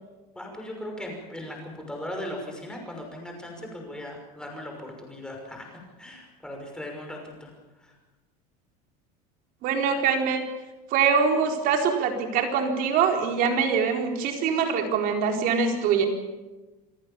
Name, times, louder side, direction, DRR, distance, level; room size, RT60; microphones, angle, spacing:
voice 1, 0.4-5.7 6.0-7.5 7.8-7.9, left 1 dB, 5° left, 1 dB, 5.9 m, -38 dB
voice 2, 9.6-10.4 10.9-16.1, right 6 dB, 45° right, 3 dB, 4.3 m, -23 dB
28.0 x 18.0 x 7.2 m, 1.2 s
cardioid pair, 160°, 19 cm